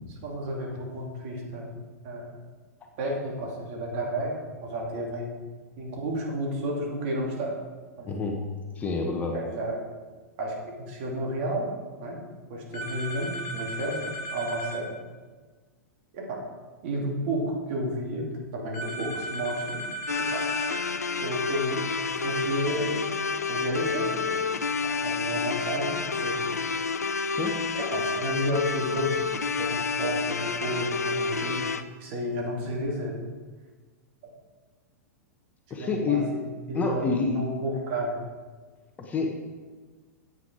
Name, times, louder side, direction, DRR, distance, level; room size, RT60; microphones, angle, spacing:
voice 1, 0.2-1.7 2.0-2.3 3.0-5.4 5.8-7.5 8.0-8.1 9.3-9.8 10.4-11.7 12.0-12.2 12.5-14.9 16.1-16.4 16.8-19.8 20.3-20.4 21.1-21.8 22.2-23.0 23.5-24.4 24.8-26.4 27.0-27.1 27.7-31.6 32.0-33.2 35.8-36.4 36.7-38.2, right 1 dB, 45° right, -1 dB, 2.5 m, -32 dB
voice 2, 8.0-8.5 8.8-9.4 27.4-27.6 35.7-36.4 36.7-37.5 39.0-39.3, left 4 dB, 15° left, 2 dB, 1.1 m, -28 dB
sound 1, 12.7-14.8 18.7-20.8, right 1 dB, 40° left, 2.1 m, -36 dB
sound 2, 20.1-31.8, left 4 dB, 75° left, 0.5 m, -29 dB
9.5 x 8.4 x 5.0 m, 1.4 s
figure-of-eight pair, 100°, 9 cm